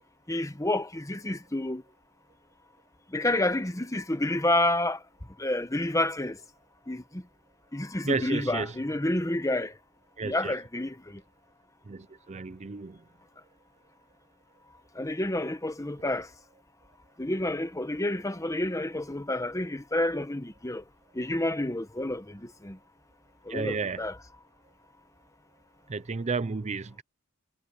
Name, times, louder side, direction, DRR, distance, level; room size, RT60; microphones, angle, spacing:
voice 1, 0.3-1.8 3.1-5.0 5.4-6.4 6.9-7.2 7.7-9.7 10.2-11.2 15.0-16.3 17.2-20.8 21.1-22.8 23.5-24.1, left 1 dB, 15° left, 1.2 m, -29 dB
voice 2, 8.0-8.8 10.2-10.6 11.9-13.0 23.5-24.1 25.9-27.0, right 4 dB, 30° right, 0.5 m, -32 dB
head